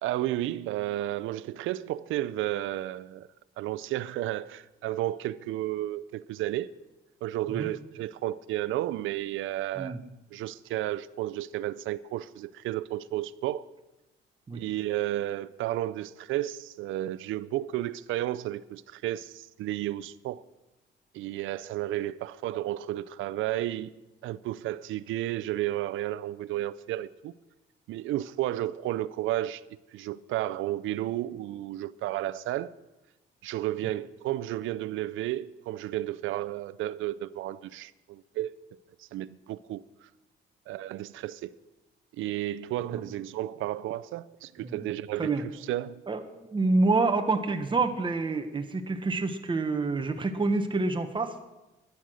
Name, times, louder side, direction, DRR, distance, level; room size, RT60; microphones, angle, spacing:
voice 1, 0.0-3.3 3.6-6.7 7.2-10.0 10.3-13.6 14.5-20.4 21.1-23.9 24.2-27.3 27.9-29.6 29.9-32.7 33.4-38.6 39.0-40.1 40.7-41.6 42.2-45.4 45.7-46.0, right 14 dB, 85° right, 0.5 m, -32 dB
voice 2, 46.1-51.3, right 3 dB, 25° right, 1.2 m, -27 dB
12.0 x 10.5 x 6.4 m
cardioid pair, 90°, 20 cm